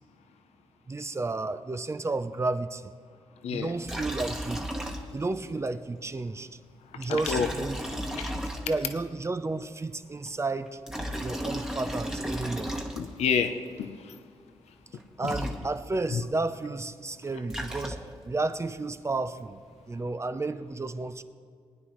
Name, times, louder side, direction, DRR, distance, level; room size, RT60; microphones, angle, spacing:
voice 1, 0.9-2.9 3.5-4.6 5.1-6.6 6.9-7.8 8.1-8.2 8.6-10.8 11.2-12.7 15.2-18.0 18.2-21.2, right 3 dB, 25° right, 10 dB, 0.6 m, -32 dB
voice 2, 3.4-3.7 6.9-7.5 8.2-8.4 12.9-14.2 15.2-15.3 16.1-16.2, left 6 dB, 90° left, 7 dB, 0.7 m, -29 dB
Liquid, 3.8-5.4 5.7-5.8 7.1-9.0 10.7-13.3 14.9-15.0 15.2-16.1 17.2-18.3, equal, 5° right, 1.3 m, -34 dB
20.5 x 9.5 x 3.2 m, 2.2 s
cardioid pair, 70°, 11 cm